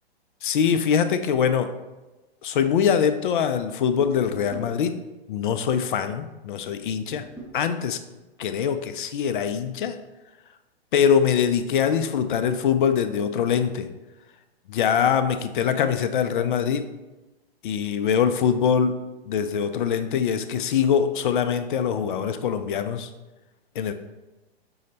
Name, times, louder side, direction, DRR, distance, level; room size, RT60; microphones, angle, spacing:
voice 1, 0.4-1.7 2.4-4.9 5.3-7.3 7.5-8.0 8.4-10.0 10.9-13.9 14.7-16.9 17.6-19.0 19.3-23.1 23.8-23.9, left 7 dB, 55° left, 10 dB, 0.4 m, -23 dB
sound 1, 4.0-4.8 7.1-7.6, right 3 dB, 5° right, 0.5 m, -40 dB
5.6 x 2.1 x 3.9 m, 1.1 s
hypercardioid pair, 115°, 31 cm